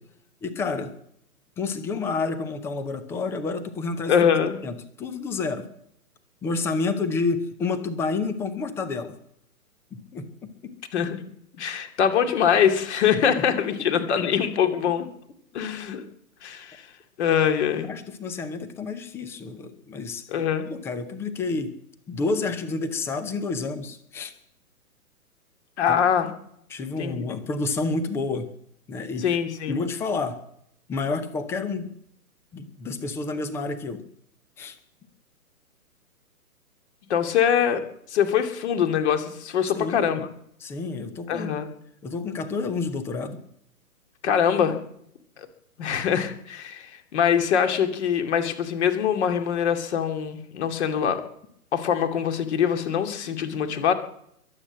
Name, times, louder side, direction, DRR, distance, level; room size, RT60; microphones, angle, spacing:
voice 1, 0.4-0.9 1.6-4.1 4.6-5.7 6.4-9.1 9.9-10.7 13.1-13.4 13.8-13.9 17.9-20.2 20.7-21.7 22.1-24.3 25.9-26.0 26.7-28.5 28.9-29.4 29.7-30.4 30.9-31.9 32.5-34.0 34.6-34.8 39.7-40.3 40.6-41.5 42.0-43.4, left 3 dB, 5° left, 13 dB, 0.6 m, -29 dB
voice 2, 4.1-4.6 10.9-11.2 11.5-15.1 15.5-16.1 16.4-16.8 17.2-17.9 20.3-20.7 25.8-26.3 27.0-27.2 29.2-29.8 37.1-37.8 38.1-40.2 41.3-41.7 44.2-44.8 45.4-45.5 45.8-51.2 51.7-53.9, left 8 dB, 45° left, 8 dB, 2.6 m, -23 dB
22.5 x 8.3 x 7.5 m, 0.70 s
figure-of-eight pair, 135°, 45 cm